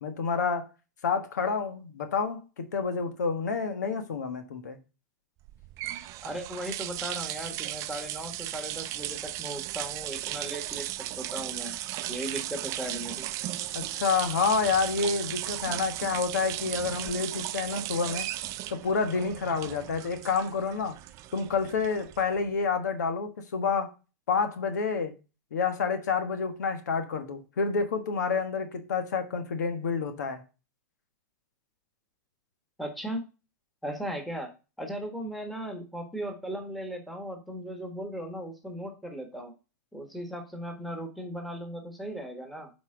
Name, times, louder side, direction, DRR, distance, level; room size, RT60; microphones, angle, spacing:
voice 1, 0.0-0.7 1.0-4.8 13.7-18.3 18.7-21.0 21.3-23.9 24.3-25.1 25.5-30.4, left 5 dB, 85° left, 1.4 m, -29 dB
sound 1, 5.5-22.5, right 14 dB, 35° right, 0.5 m, -36 dB
voice 2, 6.2-11.8 12.1-13.3 32.8-33.2 33.8-34.5 34.8-39.5 39.9-42.7, right 1 dB, ahead, 1.5 m, -37 dB
8.3 x 4.4 x 3.8 m
hypercardioid pair, 135°, 9 cm